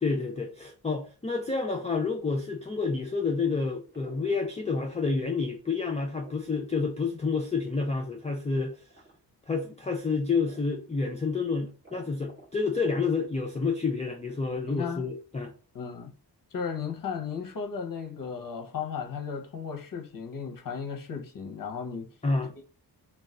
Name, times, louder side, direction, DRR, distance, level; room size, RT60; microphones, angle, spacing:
voice 1, 0.0-8.8 9.5-15.5 22.2-22.5, left 4 dB, 20° left, 0.3 m, -29 dB
sound 1, 3.9-5.3 5.6-7.9 8.7-9.2 9.7-9.8 10.5-10.9 11.2-11.3 11.6-12.7, right 2 dB, 25° right, 1.1 m, -51 dB
voice 2, 14.7-15.1 15.7-16.1 16.5-22.1, left 6 dB, 55° left, 0.7 m, -35 dB
2.3 x 2.3 x 3.6 m
wide cardioid pair, 170°, 41 cm